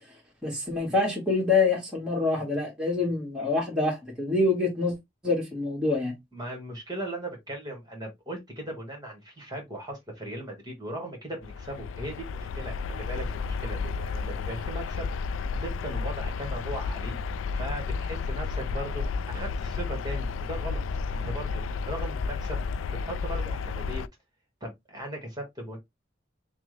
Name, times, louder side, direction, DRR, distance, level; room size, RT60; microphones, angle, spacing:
voice 1, 0.4-4.9 5.2-6.1, left 3 dB, 5° right, 1.4 m, -26 dB
voice 2, 6.3-17.2 17.5-20.8 21.1-22.6 23.0-24.0 24.6-25.8, right 1 dB, 20° right, 1.5 m, -38 dB
sound 1, 11.4-24.1, left 4 dB, 90° left, 0.3 m, -32 dB
5.8 x 2.1 x 3.2 m
head